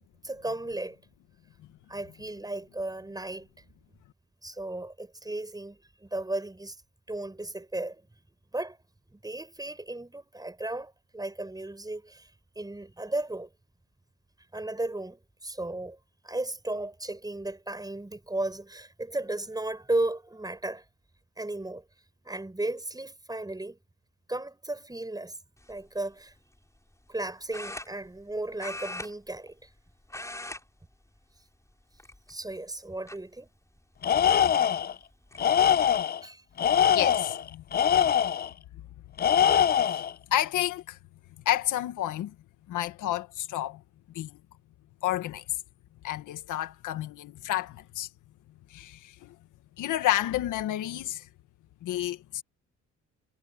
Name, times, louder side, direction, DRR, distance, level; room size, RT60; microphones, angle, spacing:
voice 1, 0.2-1.0 1.9-3.5 4.4-6.8 7.1-8.0 8.5-8.8 9.1-13.5 14.5-16.0 16.2-20.9 21.4-21.9 22.2-23.8 24.3-25.4 25.7-26.3 27.1-29.7 32.3-33.5 36.2-36.4, right 2 dB, 15° right, 6.9 m, -35 dB
sound 1, 25.6-25.9 27.5-28.3 28.6-29.8 30.0-30.6 30.9-31.2 31.9-32.5 33.1-33.2 34.6-34.7 35.0-35.4, left 1 dB, 10° left, 5.4 m, -40 dB
Tools, 34.0-34.9 35.4-36.2 36.6-38.5 39.2-40.1, left 9 dB, 35° left, 0.4 m, -23 dB
voice 2, 36.9-37.6 38.0-38.1 40.3-41.0 41.5-42.3 42.7-43.8 44.2-44.4 45.0-45.4 46.0-48.1 48.7-49.3 49.8-51.3 51.8-52.4, left 13 dB, 85° left, 1.8 m, -30 dB
cardioid pair, 90°, 30 cm